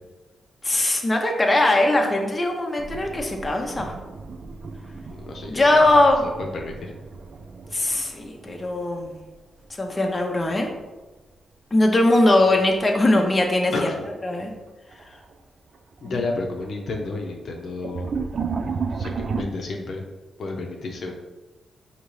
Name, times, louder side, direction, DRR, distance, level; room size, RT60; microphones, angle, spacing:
voice 1, 0.6-4.0 5.5-6.3 7.7-9.2 9.8-10.7 11.7-13.9 14.2-14.5 16.0-16.2, left 1 dB, 25° left, 1 dB, 0.6 m, -20 dB
sound 1, 2.8-9.6 9.9-10.8 12.5-12.8 13.3-13.4 14.4-14.5 14.9-15.3 15.7-19.4, right 5 dB, 55° right, 0.3 m, -34 dB
voice 2, 5.1-5.8 6.2-6.9 13.7-14.0 16.0-18.1 18.9-20.0 20.4-21.1, left 3 dB, 65° left, 1 dB, 0.6 m, -31 dB
5.1 x 2.8 x 3.1 m, 1.2 s
cardioid pair, 85°, 0 cm